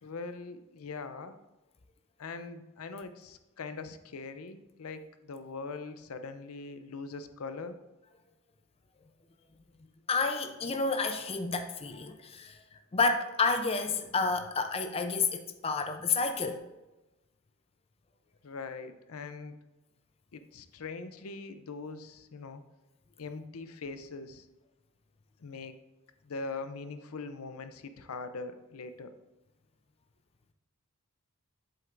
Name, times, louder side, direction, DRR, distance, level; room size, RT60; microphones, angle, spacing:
voice 1, 0.0-1.4 2.2-7.8 18.4-19.6 20.3-22.6 23.2-24.5 25.4-25.8 26.3-29.1, left 4 dB, 75° left, 0.6 m, -42 dB
voice 2, 10.1-12.6 12.9-16.6, left 4 dB, 25° left, 0.5 m, -30 dB
7.7 x 7.7 x 2.5 m
head